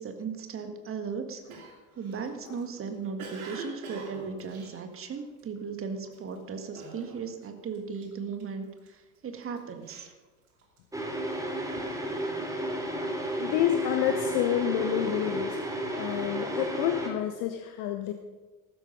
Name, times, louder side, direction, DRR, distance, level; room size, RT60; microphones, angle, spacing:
voice 1, 0.0-1.4 2.0-10.1, right 5 dB, 30° right, 7 dB, 1.9 m, -37 dB
Cough, 1.5-5.6 6.1-6.4 6.8-7.5 7.7-8.9 9.4-10.9, right 3 dB, 70° right, 2.9 m, -45 dB
sound 1, 10.9-17.1, right 1 dB, 5° right, 3.2 m, -32 dB
voice 2, 13.4-15.6 16.0-18.1, left 11 dB, 50° left, 7 dB, 1.1 m, -28 dB
14.5 x 13.0 x 5.4 m, 1.2 s
figure-of-eight pair, 70°, 45 cm